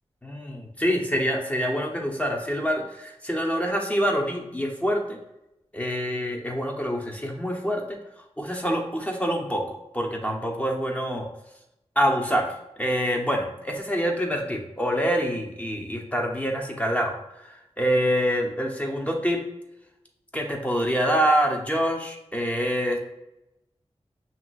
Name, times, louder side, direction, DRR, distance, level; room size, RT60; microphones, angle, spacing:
voice 1, 0.2-5.2 5.7-8.0 8.4-9.6 9.9-11.3 12.0-17.1 17.8-19.4 20.3-23.0, equal, 10° left, 1 dB, 0.9 m, -26 dB
6.2 x 2.9 x 2.5 m, 0.88 s
wide cardioid pair, 55°, 11 cm